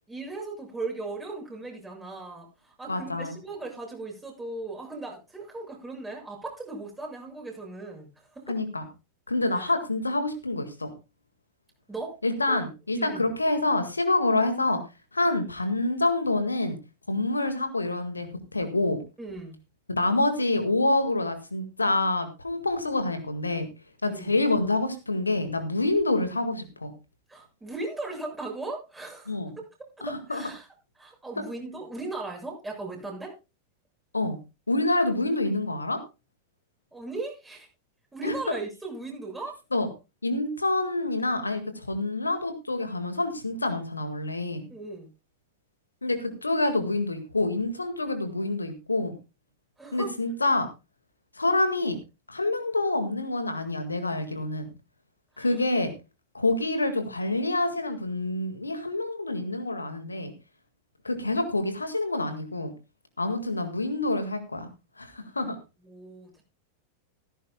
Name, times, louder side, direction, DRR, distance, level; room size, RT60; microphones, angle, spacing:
voice 1, 0.1-8.5 9.5-9.7 11.9-12.2 12.5-12.6 12.9-13.3 19.2-19.6 24.0-24.3 27.3-29.7 30.0-30.7 31.0-33.3 36.9-37.7 38.1-39.5 44.7-45.1 49.8-50.1 55.3-55.7 65.8-66.4, right 3 dB, 10° right, 0 dB, 6.8 m, -37 dB
voice 2, 2.9-3.4 8.5-8.8 9.3-10.9 12.2-14.8 15.1-16.8 17.1-18.3 18.5-19.0 19.9-23.7 24.0-26.9 29.3-29.6 30.0-30.5 31.4-31.5 34.1-34.4 34.7-36.0 38.2-38.6 39.7-39.9 40.2-44.7 46.0-49.2 49.9-50.7 51.4-52.0 52.3-54.7 55.4-55.9 56.3-60.3 61.0-62.7 63.2-64.7 65.0-65.6, left 2 dB, 80° left, 9 dB, 1.8 m, -27 dB
16.5 x 14.5 x 2.2 m, 0.28 s
figure-of-eight pair, 90°, 0 cm